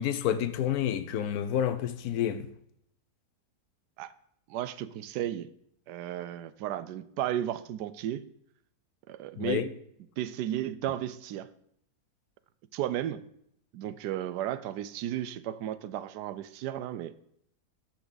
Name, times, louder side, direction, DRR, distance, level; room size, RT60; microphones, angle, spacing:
voice 1, 0.0-2.5 9.4-9.7, left 10 dB, 70° left, 1.2 m, -29 dB
voice 2, 4.5-5.5 5.9-8.2 9.1-9.7 10.2-11.5 12.7-13.2 13.7-17.1, right 12 dB, 85° right, 1.2 m, -34 dB
13.5 x 6.1 x 4.0 m
omnidirectional pair, 1.7 m